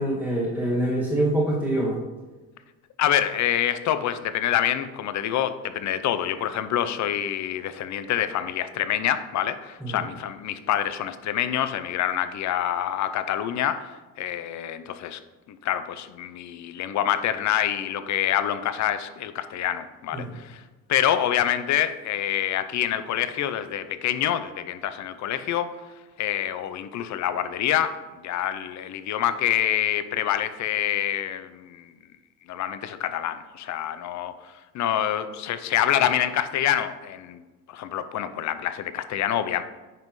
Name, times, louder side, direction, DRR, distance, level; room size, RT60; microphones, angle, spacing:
voice 1, 0.0-2.0 9.8-10.0 20.1-20.3, right 1 dB, 5° right, -5 dB, 2.0 m, -25 dB
voice 2, 3.0-13.9 14.2-15.2 15.5-20.6 20.9-25.7 26.2-28.0 28.2-31.9 32.5-37.4 37.7-39.6, left 11 dB, 50° left, 11 dB, 0.7 m, -26 dB
9.3 x 5.4 x 3.1 m, 1.2 s
cardioid pair, 105°, 37 cm